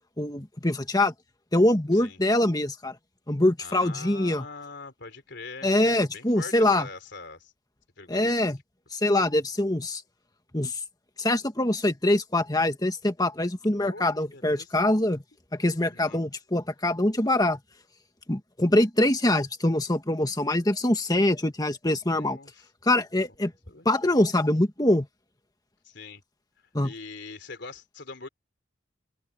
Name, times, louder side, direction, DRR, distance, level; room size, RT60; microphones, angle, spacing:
voice 1, 0.2-1.1 1.5-3.0 3.3-4.5 5.6-6.9 8.1-8.6 8.9-10.0 10.5-10.8 11.2-15.2 15.5-17.6 18.3-22.4 22.8-23.5 23.9-25.1 26.7-26.9, left 1 dB, 20° left, 1.8 m, -24 dB
voice 2, 3.6-7.5 8.0-8.4 13.7-14.7 15.8-16.2 22.1-22.5 23.7-23.9 25.8-26.2 26.8-28.3, left 3 dB, 60° left, 3.7 m, -43 dB
open air
head